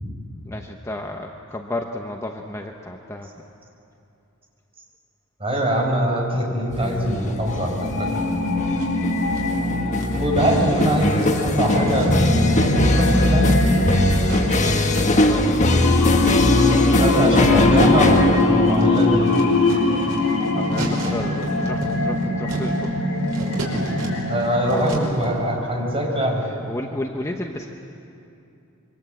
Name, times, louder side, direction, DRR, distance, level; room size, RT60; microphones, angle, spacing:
voice 1, 0.4-3.3 14.9-15.6 17.4-17.6 20.5-22.9 23.2-23.4 24.7-25.0 26.7-27.7, left 1 dB, 15° left, 2 dB, 1.0 m, -32 dB
voice 2, 5.4-8.1 10.2-13.5 17.0-19.3 24.3-26.4, equal, 25° right, 0 dB, 5.1 m, -22 dB
sound 1, 6.7-21.8, left 1 dB, 35° left, 1.4 m, -22 dB
sound 2, 7.4-25.4, left 2 dB, 85° left, 3.2 m, -22 dB
sound 3, 8.8-9.6 9.9-15.4 15.7-25.2, right 1 dB, 85° right, 5.2 m, -35 dB
26.5 x 24.0 x 7.9 m, 2.7 s
head